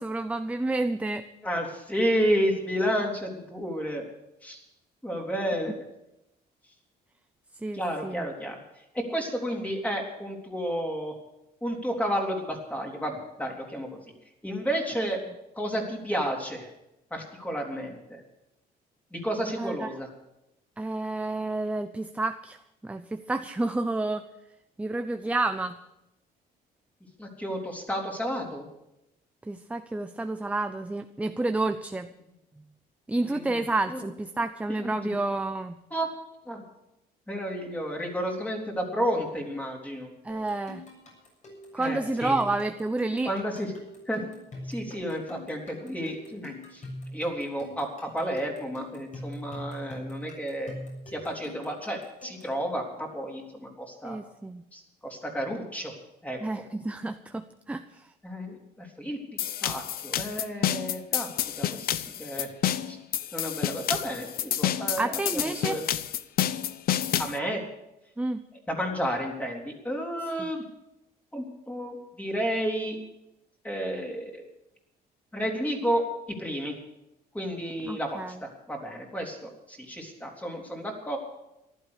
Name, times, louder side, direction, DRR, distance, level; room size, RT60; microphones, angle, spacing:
voice 1, 0.0-1.2 7.6-8.3 19.6-19.9 20.8-22.6 22.8-24.2 24.8-25.8 29.5-32.1 33.1-35.8 40.2-40.8 41.7-43.3 54.0-54.6 56.4-58.1 65.0-65.8 68.2-68.4 70.4-70.5 77.8-78.4, right 2 dB, 10° right, 8 dB, 0.6 m, -30 dB
voice 2, 1.4-4.1 4.4-4.6 5.0-5.8 7.7-8.6 8.9-11.1 11.6-14.0 14.4-15.2 15.6-16.7 17.1-18.2 19.1-20.1 27.2-28.7 33.2-33.6 33.9-34.1 34.8-34.9 35.9-36.1 36.5-36.6 37.3-40.1 41.8-42.4 43.2-43.7 44.1-44.2 44.7-46.8 47.1-50.7 51.1-54.2 54.7-55.9 56.2-56.6 58.2-61.3 61.6-62.5 62.9-63.0 63.3-65.9 67.2-67.6 68.7-70.6 71.3-73.0 73.6-74.4 75.3-76.8 77.3-81.2, equal, 10° left, 0 dB, 3.6 m, -31 dB
sound 1, 40.3-52.6, left 1 dB, 45° left, 7.1 m, -43 dB
sound 2, 59.4-67.4, left 11 dB, 65° left, 0.7 m, -29 dB
15.0 x 12.0 x 6.5 m, 0.88 s
cardioid pair, 120°, 17 cm